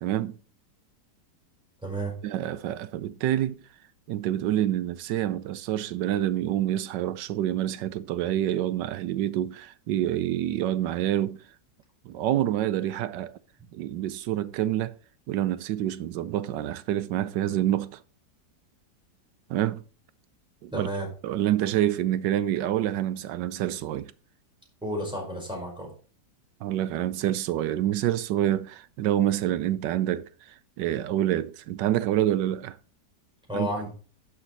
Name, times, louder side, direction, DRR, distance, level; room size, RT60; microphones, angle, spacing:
voice 1, 0.0-0.4 2.2-3.6 4.1-11.4 12.1-13.3 13.7-14.9 15.3-18.0 19.5-19.8 20.6-20.9 21.2-24.1 26.6-30.3 30.8-32.8 33.5-33.7, right 12 dB, 85° right, 1.3 m, -27 dB
voice 2, 1.8-2.1 20.7-21.1 24.8-25.9 33.5-33.9, equal, 5° right, 5.2 m, -31 dB
11.5 x 7.1 x 4.0 m
omnidirectional pair, 1.9 m